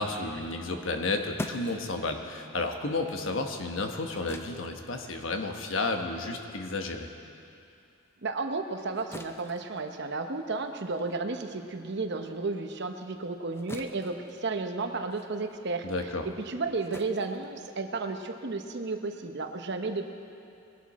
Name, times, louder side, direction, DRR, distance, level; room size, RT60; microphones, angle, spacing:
voice 1, 0.0-7.1 15.8-16.3, left 3 dB, 65° left, 4 dB, 1.1 m, -32 dB
sound 1, 1.4-7.6 8.0-18.2, left 1 dB, 10° left, 0.5 m, -47 dB
voice 2, 8.2-15.9 16.2-20.1, right 3 dB, 55° right, 6 dB, 0.9 m, -33 dB
21.0 x 11.5 x 4.2 m, 2.6 s
head